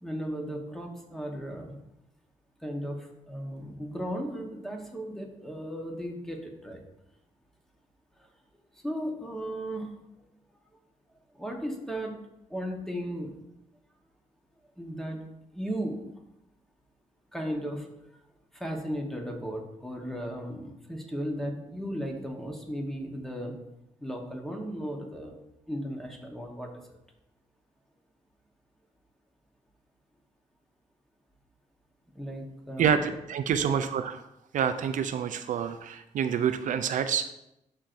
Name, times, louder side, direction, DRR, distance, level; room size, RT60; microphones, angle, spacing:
voice 1, 0.0-1.8 2.6-6.8 8.2-8.3 8.7-10.3 11.3-12.2 12.5-13.4 14.8-15.2 15.5-16.0 17.3-17.9 18.5-23.5 24.0-25.4 25.7-27.0 32.1-33.1 33.6-33.8, equal, 5° left, 1 dB, 1.2 m, -36 dB
voice 2, 32.8-34.2 34.5-37.3, right 8 dB, 75° right, 9 dB, 0.4 m, -27 dB
11.5 x 4.5 x 2.6 m, 0.85 s
cardioid pair, 105°, 13 cm